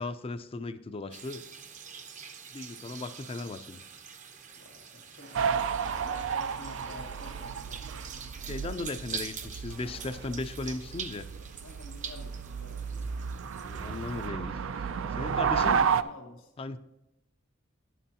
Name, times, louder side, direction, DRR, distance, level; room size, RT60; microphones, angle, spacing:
voice 1, 0.0-1.4 2.5-3.8 8.5-11.3 13.5-14.6 15.1-15.8 16.6-16.8, left 3 dB, 30° left, 11 dB, 0.4 m, -37 dB
sound 1, 1.1-14.3, right 7 dB, 40° right, 0.6 m, -45 dB
voice 2, 4.5-8.1 11.6-13.1 15.4-16.5, left 2 dB, 80° left, 0 dB, 1.6 m, -50 dB
sound 2, 5.2-7.6 8.5-8.7 9.4-10.3, right 2 dB, 60° right, 1.3 m, -50 dB
sound 3, 5.3-16.0, right 6 dB, 80° right, 0.4 m, -32 dB
11.5 x 9.3 x 2.8 m, 0.95 s
head